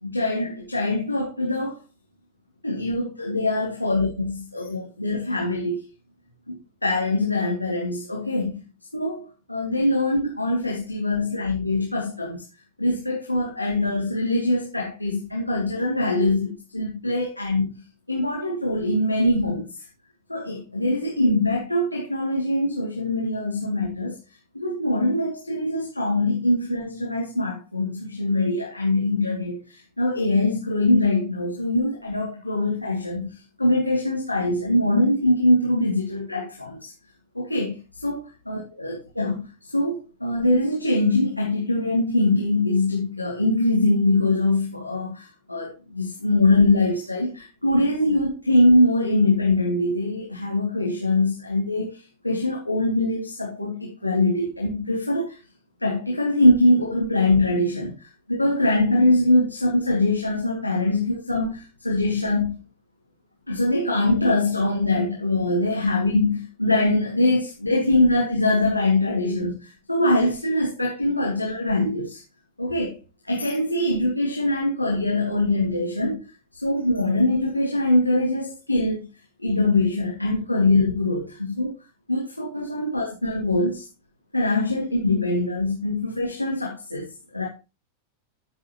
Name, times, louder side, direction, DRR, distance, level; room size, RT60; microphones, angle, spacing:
voice 1, 0.0-1.8 2.6-5.8 6.5-6.6 6.8-8.6 8.9-12.4 12.8-17.6 18.1-19.7 20.3-24.2 24.5-36.9 37.3-37.8 38.0-38.2 38.5-55.4 55.8-62.6 63.5-72.2 72.6-73.0 73.2-76.2 76.6-79.1 79.4-81.7 82.1-83.8 84.3-87.5, left 2 dB, 85° left, 2.5 m, -23 dB
14.0 x 7.5 x 3.1 m
figure-of-eight pair, 90°, 0 cm